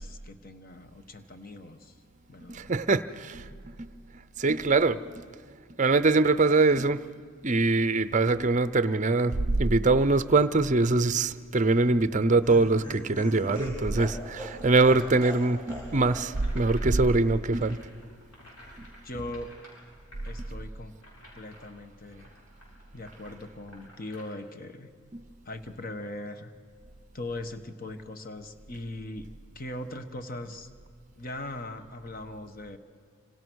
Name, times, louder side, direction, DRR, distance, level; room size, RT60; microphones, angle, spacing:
voice 1, 0.0-1.9 2.3-2.7 19.0-19.5 20.2-20.9 21.3-22.3 22.9-24.9 25.4-26.5 27.1-30.7 31.2-32.8, left 1 dB, 40° left, 1.2 m, -40 dB
voice 2, 2.5-3.4 3.8-3.9 4.4-5.0 5.8-7.0 7.4-17.8 25.1-25.2, right 3 dB, 35° right, 0.6 m, -23 dB
Laughter, 12.1-15.9 16.1-16.3 16.6-16.7, equal, 15° left, 7.9 m, -40 dB
sound 1, 13.3-24.2, equal, 90° left, 7.9 m, -54 dB
27.0 x 26.5 x 6.3 m
head